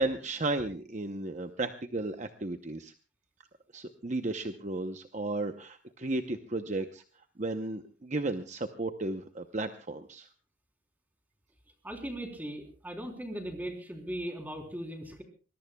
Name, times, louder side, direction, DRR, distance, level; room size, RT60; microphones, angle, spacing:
voice 1, 0.0-2.9 3.7-7.0 7.4-10.3, right 2 dB, 35° right, 7 dB, 0.8 m, -34 dB
voice 2, 11.8-15.2, right 1 dB, 10° right, 4 dB, 3.5 m, -38 dB
25.0 x 21.0 x 2.3 m, 0.36 s
head